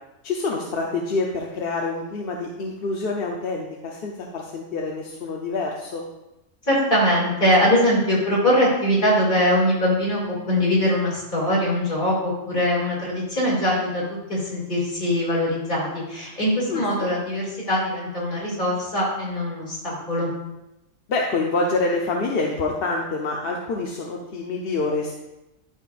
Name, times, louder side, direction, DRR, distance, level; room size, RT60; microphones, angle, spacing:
voice 1, 0.2-6.0 16.7-16.8 21.1-25.2, left 3 dB, 55° left, 0 dB, 0.8 m, -26 dB
voice 2, 6.6-14.0 14.3-20.3, equal, 40° left, -5 dB, 2.6 m, -22 dB
12.0 x 5.4 x 2.5 m, 0.94 s
omnidirectional pair, 1.4 m